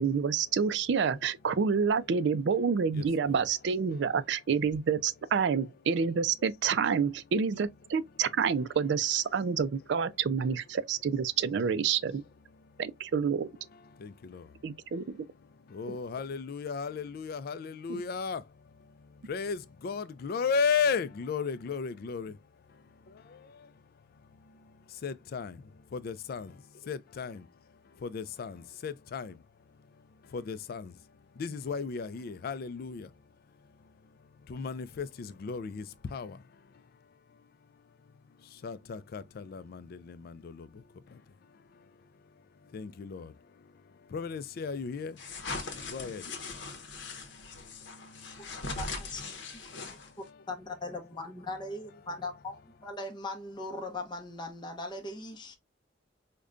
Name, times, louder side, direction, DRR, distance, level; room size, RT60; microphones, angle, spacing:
voice 1, 0.0-12.2 12.8-13.5 14.6-15.2 15.9-16.0 17.9-18.0, right 6 dB, 70° right, 0.4 m, -28 dB
voice 2, 2.2-4.2 6.4-6.9 7.9-9.4 10.4-10.6 11.4-11.8 12.3-12.6 13.2-14.6 14.9-22.4 22.7-23.7 24.4-27.5 27.8-29.4 30.0-31.1 31.3-33.1 34.4-36.9 37.3-37.5 38.1-42.1 42.6-46.4 46.7-50.4 50.8-50.9 51.2-52.9, left 5 dB, 55° left, 0.3 m, -38 dB
sound 1, 45.2-50.3, left 3 dB, 70° left, 0.8 m, -40 dB
voice 3, 48.8-49.2 49.5-50.0 50.5-55.6, left 2 dB, 25° left, 0.6 m, -39 dB
4.9 x 2.2 x 2.4 m
head